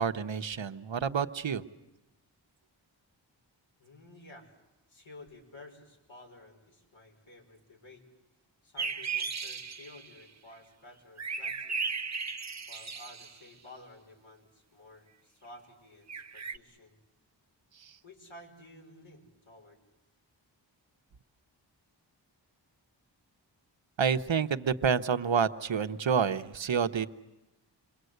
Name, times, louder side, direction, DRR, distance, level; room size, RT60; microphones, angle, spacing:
voice 1, 0.0-1.6 17.8-18.0 24.0-27.1, right 6 dB, 80° right, 9 dB, 1.1 m, -28 dB
voice 2, 3.8-4.5 4.9-8.1 8.6-11.9 12.7-17.0 18.0-19.8, left 2 dB, 85° left, 0 dB, 5.6 m, -53 dB
sound 1, 8.8-10.2 11.2-13.4 16.1-16.6, right 5 dB, 35° right, 0.8 m, -36 dB
28.5 x 22.0 x 8.0 m, 1.0 s
cardioid pair, 50°, 45 cm